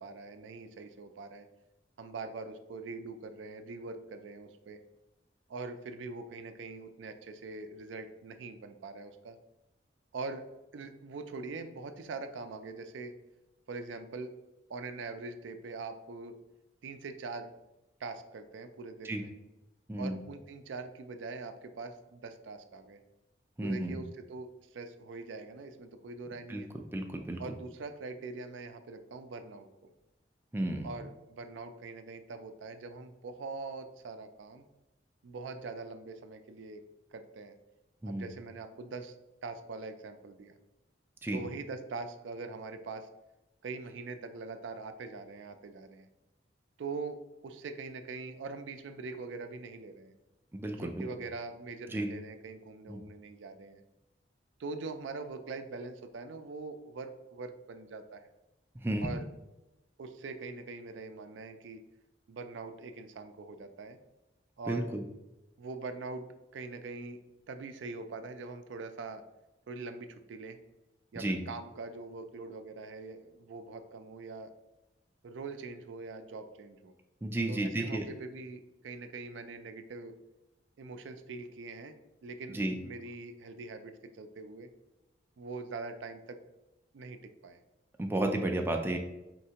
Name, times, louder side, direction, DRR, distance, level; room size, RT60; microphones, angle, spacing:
voice 1, 0.0-1.5 2.0-4.8 5.5-9.4 10.1-10.4 10.7-13.1 13.7-14.3 14.7-16.4 16.8-17.5 18.0-19.3 20.0-23.0 23.6-26.7 27.4-29.9 30.8-34.6 35.2-36.8 37.1-37.6 38.1-39.1 39.4-40.6 41.3-43.1 43.6-46.1 46.8-47.2 47.4-50.2 50.8-53.8 54.6-58.2 59.0-59.3 60.0-61.8 62.3-64.0 64.6-64.9 65.6-66.3 66.5-67.2 67.5-69.2 69.7-70.6 71.1-74.5 75.2-76.9 77.5-80.2 80.8-82.0 82.2-84.7 85.4-86.4 86.9-87.6, right 3 dB, 80° right, 8 dB, 0.4 m, -43 dB
voice 2, 23.6-24.0 26.5-27.4 30.5-30.9 38.0-38.3 41.2-41.4 50.5-51.0 51.9-52.1 52.9-53.0 58.8-59.1 64.7-65.0 71.2-71.4 77.2-78.1 82.5-82.7 88.0-89.0, right 1 dB, 10° right, 3 dB, 0.3 m, -32 dB
4.5 x 3.2 x 2.8 m, 0.99 s
head